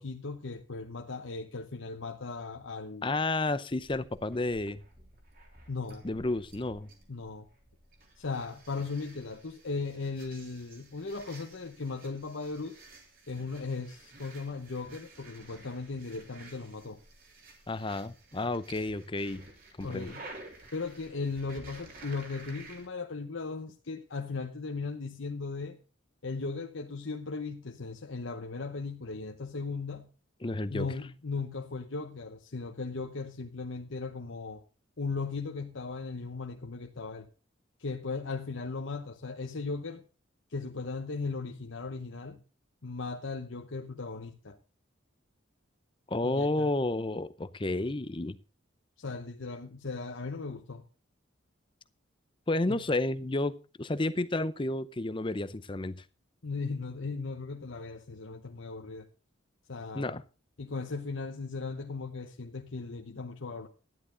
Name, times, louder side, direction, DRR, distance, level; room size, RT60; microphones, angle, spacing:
voice 1, 0.0-3.1 5.7-6.0 7.1-7.5 8.2-12.8 13.3-17.0 19.8-20.3 20.7-25.8 26.2-30.1 30.7-34.6 35.0-37.3 37.8-40.0 40.5-42.4 42.8-44.6 46.2-46.7 49.0-50.8 52.7-52.8 56.4-59.1 59.7-60.2 60.6-63.7, left 4 dB, 70° left, 0.9 m, -37 dB
voice 2, 3.0-4.8 6.0-6.9 17.7-19.4 19.8-20.1 30.4-30.9 46.1-48.4 52.5-56.0 59.9-60.2, left 2 dB, 25° left, 0.6 m, -31 dB
sound 1, 3.7-22.9, right 2 dB, 45° right, 3.4 m, -53 dB
12.5 x 11.0 x 3.9 m
head